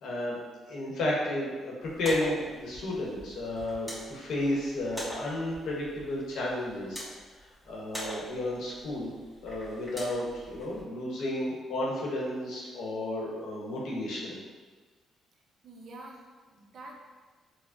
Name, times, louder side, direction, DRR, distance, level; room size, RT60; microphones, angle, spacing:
voice 1, 0.0-0.4 0.7-7.0 7.6-9.1 9.4-14.4, left 1 dB, 75° left, -4 dB, 0.9 m, -32 dB
sound 1, 1.8-10.8, equal, 5° left, 1.3 m, -44 dB
voice 2, 15.6-17.0, right 2 dB, 55° right, -1 dB, 0.6 m, -47 dB
4.7 x 2.0 x 2.5 m, 1.4 s
cardioid pair, 95°, 0 cm